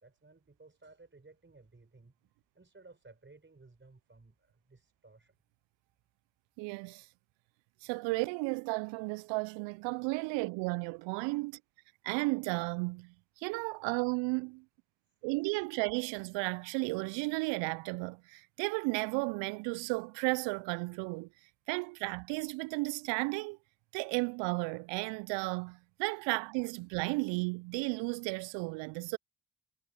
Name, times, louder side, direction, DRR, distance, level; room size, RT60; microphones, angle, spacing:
voice 1, 0.0-2.1 2.5-5.3, right 3 dB, 25° right, 4.6 m, -58 dB
voice 2, 6.6-7.1 7.8-11.6 12.0-14.6 15.2-21.3 21.7-23.6 23.9-29.2, right 28 dB, 75° right, 0.5 m, -34 dB
hypercardioid pair, 40°, 45 cm